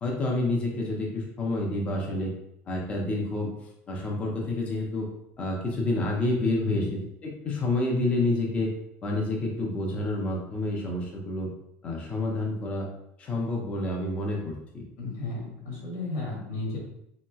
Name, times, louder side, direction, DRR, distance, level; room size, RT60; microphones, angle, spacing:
voice 1, 0.0-2.3 2.7-3.5 3.9-5.1 5.4-8.7 9.0-11.5 11.8-12.9 13.2-14.8, left 2 dB, 20° left, -1 dB, 0.5 m, -28 dB
voice 2, 15.0-16.8, left 2 dB, 85° left, -3 dB, 1.3 m, -33 dB
3.1 x 2.8 x 2.3 m, 0.78 s
cardioid pair, 175°, 7 cm